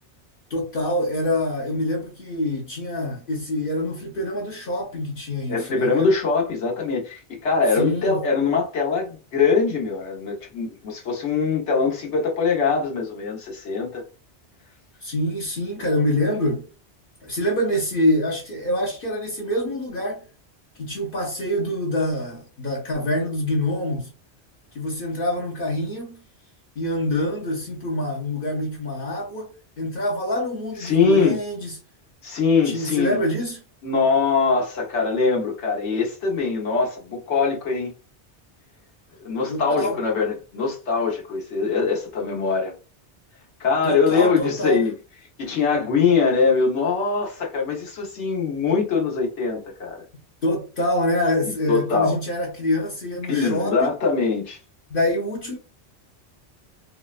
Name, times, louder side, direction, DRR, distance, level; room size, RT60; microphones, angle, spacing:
voice 1, 0.5-6.1 7.8-8.2 15.0-16.7 17.2-20.2 20.8-24.1 24.7-26.2 26.8-29.5 29.8-31.7 32.6-33.6 39.5-40.0 43.8-44.8 50.4-53.9 54.9-55.6, left 1 dB, 55° left, 0.9 m, -25 dB
voice 2, 5.5-14.0 30.8-31.4 32.2-33.2 33.8-37.9 39.2-42.7 43.6-44.9 45.4-50.0 51.4-52.1 53.3-54.6, left 5 dB, 85° left, 1.3 m, -22 dB
3.8 x 2.1 x 2.4 m
omnidirectional pair, 1.1 m